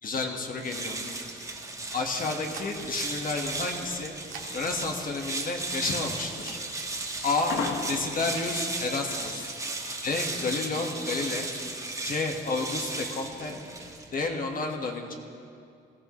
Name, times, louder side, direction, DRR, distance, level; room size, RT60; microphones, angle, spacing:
voice 1, 0.0-1.0 1.9-4.1 4.5-6.6 7.2-7.6 7.9-9.5 10.0-11.5 12.0-13.6 14.1-15.1, left 3 dB, 45° left, 2 dB, 1.6 m, -30 dB
sound 1, 0.5-14.2, right 2 dB, 15° right, 1.5 m, -36 dB
sound 2, 2.0-8.5, right 6 dB, 85° right, 1.8 m, -50 dB
sound 3, 3.7-8.6, left 5 dB, 80° left, 1.2 m, -36 dB
19.0 x 14.0 x 3.2 m, 2.5 s
cardioid pair, 90°, 20 cm